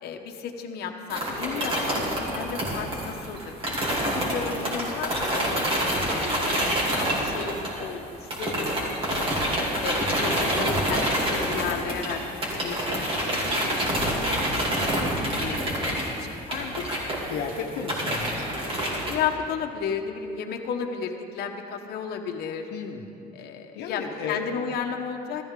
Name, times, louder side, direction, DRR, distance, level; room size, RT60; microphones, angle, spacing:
voice 1, 0.0-5.5 6.1-9.3 9.8-14.3 15.4-16.8 19.1-22.7 23.3-25.4, left 7 dB, 70° left, 3 dB, 1.0 m, -33 dB
sound 1, 1.1-8.0 8.3-19.1, equal, 35° right, 2.9 m, -27 dB
voice 2, 16.6-16.9 17.3-18.6 22.7-23.0 23.4-23.5 23.7-24.4, left 6 dB, 85° left, 2 dB, 0.9 m, -34 dB
14.0 x 13.5 x 3.7 m, 2.6 s
cardioid pair, 110°, 17 cm